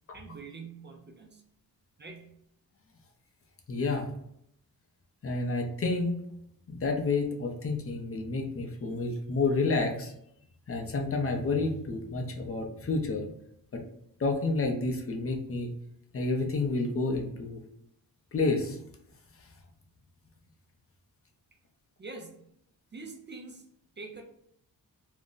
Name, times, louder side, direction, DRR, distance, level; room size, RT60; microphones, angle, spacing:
voice 1, 0.1-1.4 2.0-2.4 22.0-22.5 22.9-23.7 24.0-24.2, right 3 dB, 30° right, 3 dB, 0.4 m, -45 dB
voice 2, 3.7-4.1 5.2-6.2 6.7-10.1 10.7-13.3 13.7-13.8 14.2-15.7 16.1-17.6 18.3-18.8, left 3 dB, 40° left, 2 dB, 0.5 m, -29 dB
2.5 x 2.0 x 3.7 m, 0.75 s
wide cardioid pair, 115°, 37 cm